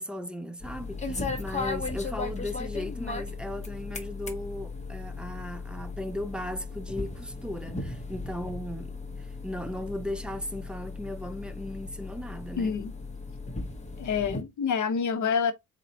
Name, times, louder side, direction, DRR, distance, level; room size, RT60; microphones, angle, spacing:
voice 1, 0.0-12.8, left 1 dB, 5° right, 0.4 m, -37 dB
sound 1, 0.6-14.4, left 3 dB, 20° left, 0.7 m, -36 dB
voice 2, 12.6-12.9 14.0-15.5, left 6 dB, 65° left, 0.6 m, -27 dB
4.1 x 2.2 x 3.9 m
wide cardioid pair, 150°, 32 cm